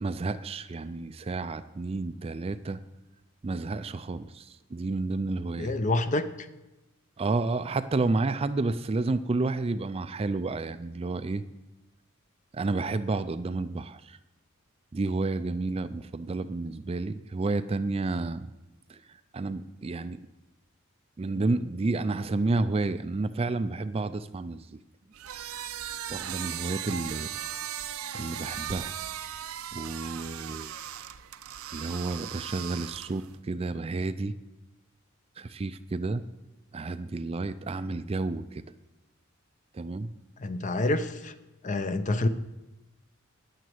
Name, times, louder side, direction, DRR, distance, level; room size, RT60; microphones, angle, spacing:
voice 1, 0.0-2.8 3.4-5.7 7.2-11.4 12.5-14.2 14.9-18.5 18.9-19.0 19.3-20.2 21.2-24.8 26.1-27.3 28.1-28.9 29.7-30.7 31.7-34.3 35.4-36.2 36.7-38.6 39.7-40.1, right 3 dB, 25° right, 12 dB, 0.4 m, -30 dB
voice 2, 5.6-6.3 40.4-41.3 41.6-42.3, left 2 dB, 35° left, 11 dB, 0.6 m, -27 dB
sound 1, 25.1-33.3, right 10 dB, 80° right, 0.6 m, -38 dB
9.8 x 9.3 x 7.7 m, 1.0 s
head